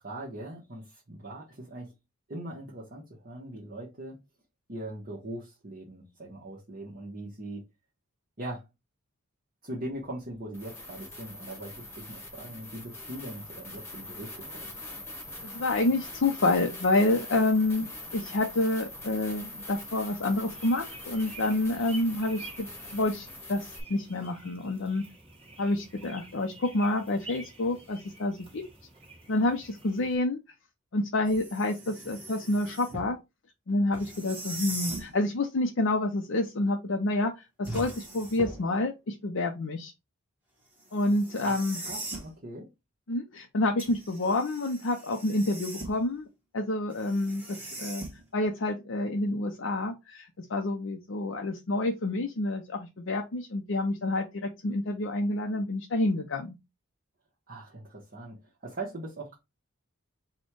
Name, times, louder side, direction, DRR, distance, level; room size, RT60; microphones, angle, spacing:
voice 1, 0.0-1.9 2.3-4.2 4.7-7.6 8.4-8.7 9.6-14.7 41.4-42.7 57.5-59.4, right 1 dB, 40° right, 1.0 m, -41 dB
sound 1, 10.5-23.8, left 1 dB, 10° left, 1.1 m, -43 dB
voice 2, 15.4-17.9 18.1-25.0 25.6-28.6 29.3-30.4 30.9-33.2 33.7-39.9 40.9-41.8 43.1-46.3 46.5-48.0 48.3-56.5, left 2 dB, 60° left, 0.5 m, -28 dB
sound 2, 20.5-30.2, right 2 dB, 25° right, 1.4 m, -49 dB
sound 3, 31.3-33.1 33.9-35.1 37.6-38.7 40.9-42.3 43.8-46.1 46.9-48.4, right 2 dB, 10° right, 1.1 m, -40 dB
4.3 x 2.2 x 4.6 m
head